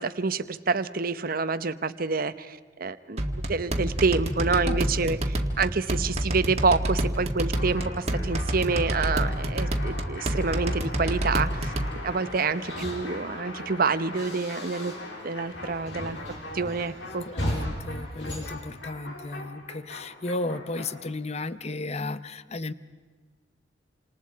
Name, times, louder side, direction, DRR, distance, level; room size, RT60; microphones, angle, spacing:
voice 1, 0.0-3.2 3.5-11.7 12.0-14.9 15.2-16.2 16.5-17.3, right 4 dB, 50° right, 12 dB, 0.9 m, -27 dB
sound 1, 3.2-11.9, right 1 dB, 35° right, 1.7 m, -28 dB
sound 2, 7.5-21.1, left 2 dB, 90° left, 4.2 m, -41 dB
sound 3, 12.3-15.3 15.5-19.4, equal, 75° left, 5.7 m, -37 dB
voice 2, 17.2-22.7, left 2 dB, 35° left, 14 dB, 0.8 m, -34 dB
28.0 x 27.0 x 4.7 m, 1.5 s
head